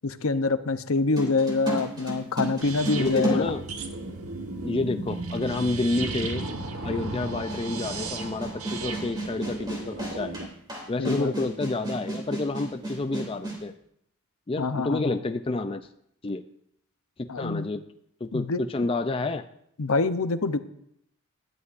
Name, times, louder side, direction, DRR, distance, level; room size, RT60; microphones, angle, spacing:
voice 1, 0.0-3.5 11.0-11.5 14.6-15.2 17.3-17.7 18.3-18.6 19.8-20.6, left 3 dB, 70° left, 11 dB, 0.7 m, -26 dB
sound 1, 1.2-4.3 5.2-5.3 7.5-13.6, right 2 dB, 20° right, 2.9 m, -33 dB
sound 2, 2.6-10.5, right 3 dB, 75° right, 1.3 m, -35 dB
voice 2, 3.0-3.6 4.6-6.5 6.8-10.5 10.9-13.7 14.5-15.9 16.2-16.4 17.2-17.8 18.2-19.5, left 2 dB, 25° left, 8 dB, 0.4 m, -29 dB
20.5 x 12.5 x 2.6 m, 0.72 s
head